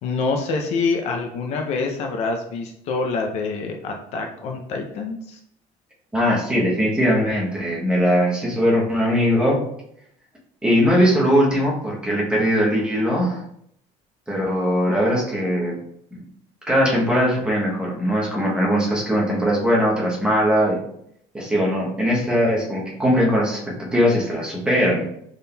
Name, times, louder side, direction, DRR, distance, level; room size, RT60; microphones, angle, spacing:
voice 1, 0.0-5.4, left 4 dB, 50° left, 3 dB, 0.4 m, -26 dB
voice 2, 6.1-9.6 10.6-13.4 14.3-15.8 16.1-16.2 16.7-20.8 21.3-23.6 23.9-25.0, equal, 5° right, -4 dB, 0.8 m, -20 dB
4.0 x 3.6 x 2.2 m, 0.71 s
cardioid pair, 175°, 14 cm